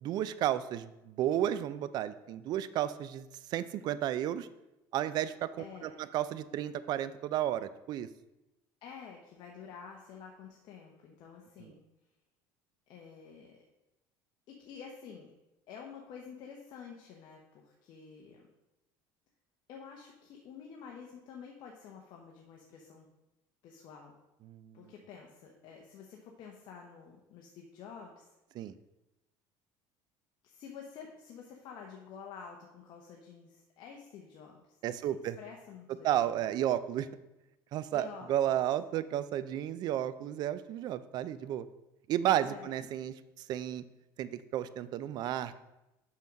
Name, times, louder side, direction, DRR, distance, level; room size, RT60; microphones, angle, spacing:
voice 1, 0.0-4.5 4.9-8.1 11.6-11.7 24.5-24.8 28.5-28.7 34.8-35.4 36.0-37.1 37.7-41.7 42.1-43.8 44.2-45.6, right 11 dB, 55° right, 14 dB, 0.4 m, -33 dB
voice 2, 5.6-6.0 8.8-11.8 12.9-13.6 14.5-15.3 15.7-18.5 19.7-23.1 23.6-24.2 24.7-28.4 30.4-36.5 37.9-38.6 42.4-42.8, left 6 dB, 60° left, 0 dB, 1.1 m, -49 dB
6.1 x 5.7 x 5.2 m, 0.96 s
cardioid pair, 125°, 9 cm